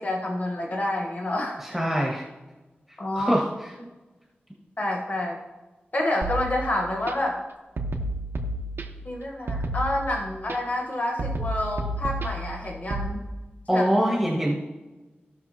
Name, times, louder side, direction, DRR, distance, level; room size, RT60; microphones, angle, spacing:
voice 1, 0.0-1.6 3.0-3.4 4.8-5.4 5.9-7.4 9.0-13.2 13.7-13.8, left 1 dB, 45° left, 0 dB, 1.3 m, -28 dB
voice 2, 1.6-2.2 3.1-3.7 13.7-14.6, equal, 5° right, -3 dB, 1.7 m, -24 dB
sound 1, 6.2-7.1 7.8-9.1 9.5-10.6 11.2-13.1, right 1 dB, 90° right, 1.2 m, -31 dB
16.5 x 6.0 x 2.9 m, 1.1 s
wide cardioid pair, 80°, 4 cm